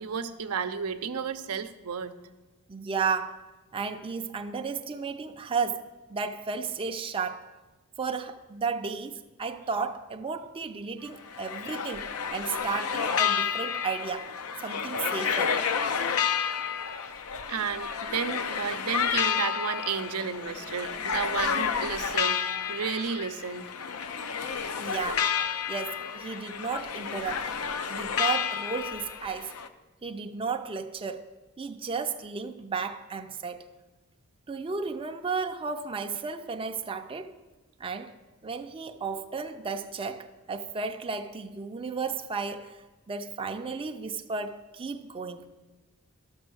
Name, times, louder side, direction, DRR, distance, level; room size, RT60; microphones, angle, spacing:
voice 1, 0.0-2.1 17.5-22.4 22.7-23.7, right 6 dB, 90° right, 0.6 m, -32 dB
voice 2, 2.7-3.4 3.7-5.8 6.1-7.5 8.0-14.3 14.6-15.6 24.8-25.3 25.7-27.6 27.9-29.5 30.0-31.2 31.6-33.6 34.5-37.3 37.8-38.1 38.4-42.8 43.1-45.4, right 5 dB, 25° right, 0.5 m, -33 dB
sound 1, 11.1-29.7, left 7 dB, 80° left, 0.6 m, -30 dB
13.0 x 6.1 x 6.3 m
head